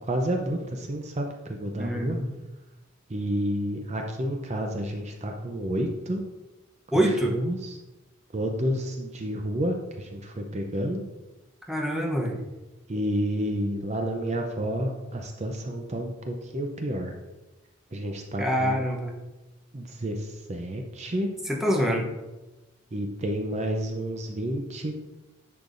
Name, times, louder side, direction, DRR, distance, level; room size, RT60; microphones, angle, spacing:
voice 1, 0.0-2.2 3.1-6.2 7.2-7.8 8.3-11.0 12.9-17.2 17.9-18.8 19.7-21.3 22.9-25.0, right 1 dB, 35° right, 3 dB, 0.6 m, -30 dB
voice 2, 1.8-2.3 6.9-7.4 11.7-12.4 18.4-19.1 21.5-22.1, equal, ahead, -1 dB, 0.8 m, -25 dB
10.5 x 6.6 x 2.6 m, 1.1 s
head